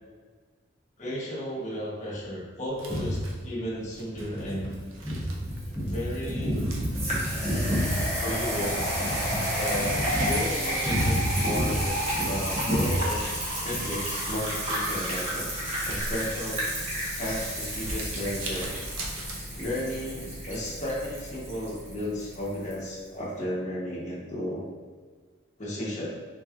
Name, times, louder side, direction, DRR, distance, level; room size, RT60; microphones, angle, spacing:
voice 1, 1.0-3.2 3.4-4.7 5.8-6.5 8.2-8.8 9.6-11.1 11.4-11.9 12.2-13.2 13.6-15.5 15.8-16.6 17.2-18.7 19.5-24.7 25.6-26.1, left 1 dB, 35° left, -6 dB, 0.9 m, -33 dB
Crumpling crinkling, 2.7-20.1, right 2 dB, 80° right, 0.6 m, -44 dB
sound 1, 4.8-22.8, equal, 30° right, 0.9 m, -32 dB
voice 2, 5.0-6.0 6.3-8.3 8.8-9.4 9.8-10.4 10.8-11.8 12.1-12.9, equal, ahead, -9 dB, 1.0 m, -29 dB
3.9 x 3.1 x 2.4 m, 1.5 s
head